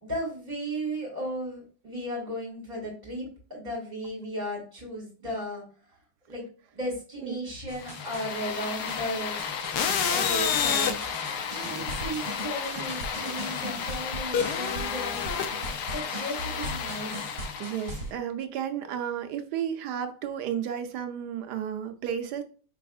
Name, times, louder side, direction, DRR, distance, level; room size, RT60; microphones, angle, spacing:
voice 1, 0.0-5.6 6.3-6.4 6.7-9.4 10.1-10.9 11.5-15.2 15.9-17.3, equal, 25° right, 2.6 m, -35 dB
sound 1, 7.7-18.1, right 1 dB, 55° right, 1.6 m, -40 dB
sound 2, 7.8-18.0, left 7 dB, 80° left, 1.2 m, -31 dB
voice 2, 17.6-22.4, right 9 dB, 85° right, 1.2 m, -32 dB
5.5 x 3.5 x 2.3 m
omnidirectional pair, 1.8 m